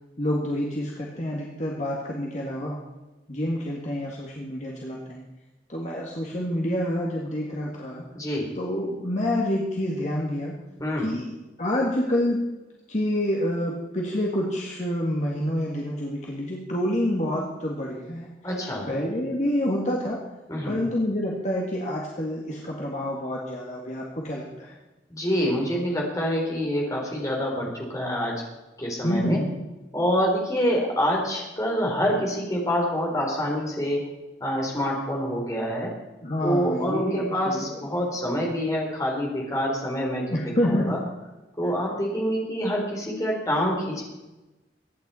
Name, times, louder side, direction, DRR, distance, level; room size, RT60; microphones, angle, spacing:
voice 1, 0.2-2.8 3.3-5.3 5.7-8.1 8.5-10.6 11.0-12.4 12.9-18.3 18.9-20.2 20.6-24.8 29.0-29.7 36.2-37.7 40.3-41.0, left 1 dB, 40° left, -3 dB, 1.9 m, -28 dB
voice 2, 8.1-8.5 10.8-11.1 18.4-18.9 20.5-20.8 25.1-28.3 28.8-29.4 29.9-34.0 34.4-35.9 36.4-40.3 40.6-41.0 41.6-44.0, equal, 20° left, -2 dB, 3.8 m, -26 dB
23.0 x 9.7 x 4.3 m, 1.1 s
head